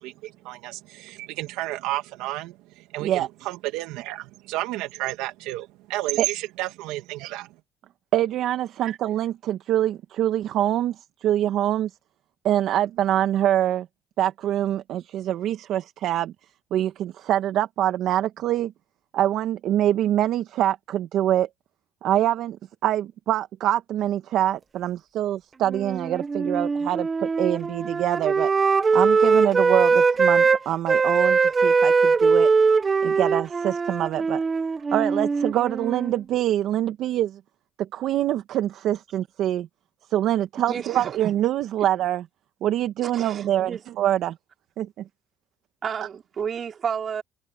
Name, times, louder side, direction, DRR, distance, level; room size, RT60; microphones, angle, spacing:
voice 1, 0.0-7.5, right 17 dB, 85° right, 2.6 m, -32 dB
voice 2, 8.1-11.0 11.2-11.9 12.4-13.9 14.2-16.3 16.7-18.7 19.1-21.5 22.0-22.6 22.8-28.5 28.9-32.5 33.0-34.4 34.9-37.4 37.8-39.7 40.1-42.3 42.6-44.4 44.8-45.0, right 12 dB, 70° right, 1.6 m, -24 dB
Wind instrument woodwind instrument, 25.7-30.6 30.9-36.2, right 4 dB, 30° right, 1.4 m, -21 dB
voice 3, 40.7-41.2 43.0-43.8 45.8-47.2, right 7 dB, 45° right, 4.8 m, -31 dB
supercardioid pair, 85°, 0 cm